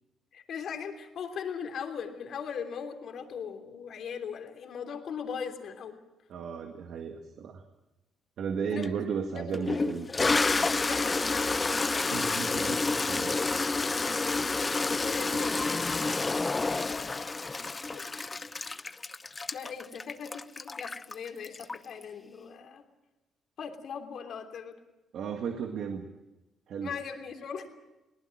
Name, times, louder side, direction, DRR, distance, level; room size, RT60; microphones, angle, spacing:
voice 1, 0.3-6.0 8.7-8.9 9.3-10.1 10.8-11.6 15.0-16.2 16.9-17.3 17.9-18.1 19.5-22.8 23.6-24.7 26.8-27.6, left 7 dB, 65° left, 5 dB, 3.2 m, -39 dB
voice 2, 6.3-7.6 8.4-10.1 12.1-12.8 13.1-13.4 15.3-15.4 25.1-26.0 26.7-27.0, right 6 dB, 70° right, 4 dB, 1.9 m, -34 dB
Toilet flush, 8.8-8.9 9.5-22.0, left 3 dB, 25° left, 0.7 m, -29 dB
22.5 x 19.0 x 7.9 m, 1.0 s
cardioid pair, 90°, 0 cm